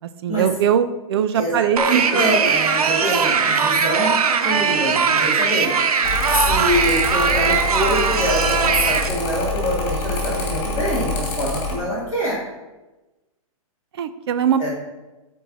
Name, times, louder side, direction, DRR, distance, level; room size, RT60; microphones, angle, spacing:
voice 1, 0.2-2.2 3.8-3.9 14.0-14.6, right 8 dB, 45° right, 11 dB, 0.6 m, -21 dB
voice 2, 1.3-4.1 4.4-5.8 6.4-12.4 14.6-14.7, equal, 15° right, -9 dB, 2.4 m, -24 dB
sound 1, 1.8-9.1, right 6 dB, 85° right, 0.9 m, -20 dB
Mechanical fan, 6.0-11.8, left 3 dB, 30° left, 2.3 m, -26 dB
12.0 x 4.7 x 4.1 m, 1.1 s
hypercardioid pair, 165°, 19 cm